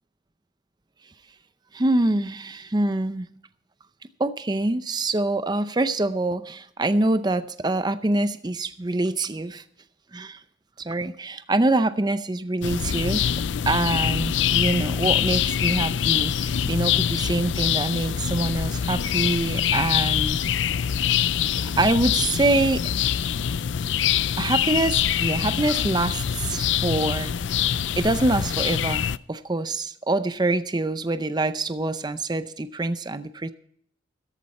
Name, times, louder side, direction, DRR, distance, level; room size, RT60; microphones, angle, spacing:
voice 1, 1.7-3.3 4.2-9.6 10.1-10.4 10.8-13.4 13.7-20.4 21.8-22.9 24.4-27.3 28.0-33.5, right 2 dB, 20° right, 11 dB, 0.5 m, -25 dB
sound 1, 12.6-29.2, left 9 dB, 75° left, 0.4 m, -24 dB
14.0 x 11.5 x 4.2 m, 0.64 s
head